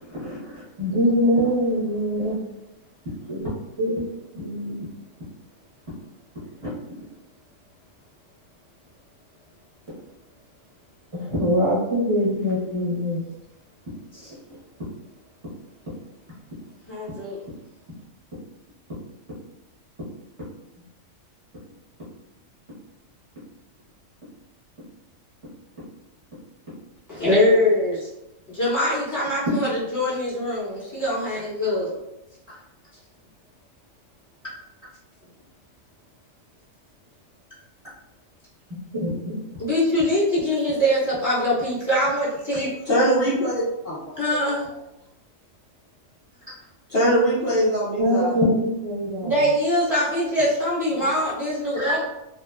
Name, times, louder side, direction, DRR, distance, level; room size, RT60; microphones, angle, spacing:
voice 1, 0.0-2.4 3.3-3.5 3.8-4.0 4.3-4.8 11.1-13.2 32.5-32.6 38.9-39.4 48.0-49.3 51.8-52.0, equal, 25° right, -11 dB, 0.9 m, -23 dB
voice 2, 16.9-17.4 27.1-28.1 28.5-32.0 39.6-42.7 44.2-44.7 49.2-52.1, left 1 dB, 15° left, -10 dB, 1.0 m, -23 dB
voice 3, 42.9-44.0 46.9-48.3 50.9-51.1, equal, 55° left, -8 dB, 0.8 m, -22 dB
2.8 x 2.2 x 2.2 m, 0.91 s
omnidirectional pair, 1.4 m